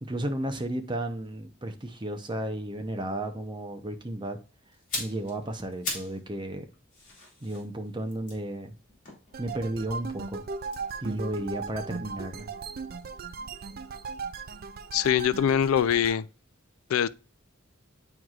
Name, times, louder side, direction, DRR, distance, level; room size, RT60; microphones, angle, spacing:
voice 1, 0.0-4.4 5.0-6.7 7.4-8.7 9.4-10.4 11.0-12.5, right 1 dB, 20° right, 0.7 m, -33 dB
sound 1, 4.7-6.2 6.5-9.8 10.6-12.6 12.9-13.1, left 2 dB, 40° left, 2.8 m, -40 dB
sound 2, 9.3-16.2, right 4 dB, 45° right, 0.4 m, -38 dB
voice 2, 14.9-16.3 16.9-17.1, left 9 dB, 90° left, 0.3 m, -23 dB
9.3 x 4.6 x 2.4 m
head